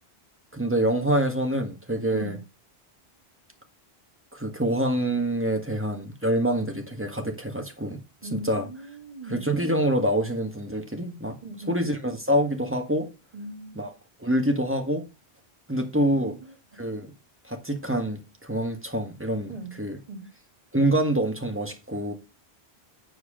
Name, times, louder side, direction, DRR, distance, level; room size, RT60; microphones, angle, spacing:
voice 1, 0.5-2.4 4.3-8.0 8.3-8.7 9.3-11.4 11.7-13.1 13.7-13.9 14.2-15.1 15.7-16.4 16.8-17.1 17.5-20.0 20.7-22.1, right 1 dB, 10° right, 1.7 m, -26 dB
voice 2, 8.2-9.6 11.4-11.8 13.3-13.8 16.2-16.4 19.5-19.8 20.1-20.3, right 1 dB, 30° right, 2.6 m, -39 dB
9.8 x 4.7 x 5.0 m
omnidirectional pair, 1.1 m